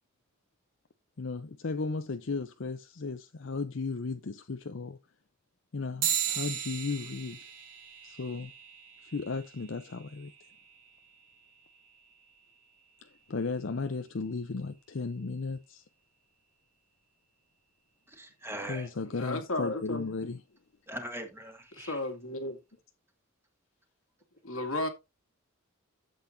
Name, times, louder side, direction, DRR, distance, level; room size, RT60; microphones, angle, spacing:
voice 1, 1.2-5.0 5.7-7.4 8.0-8.5 9.0-10.3 13.0-15.8 18.7-20.4, left 4 dB, 60° left, 0.6 m, -35 dB
sound 1, 6.0-15.8, right 9 dB, 60° right, 2.7 m, -39 dB
voice 2, 18.1-18.9 20.9-22.0, right 1 dB, 10° right, 1.8 m, -41 dB
voice 3, 19.1-20.1 21.7-22.6 24.4-24.9, left 1 dB, 80° left, 2.2 m, -33 dB
12.0 x 8.0 x 2.6 m
head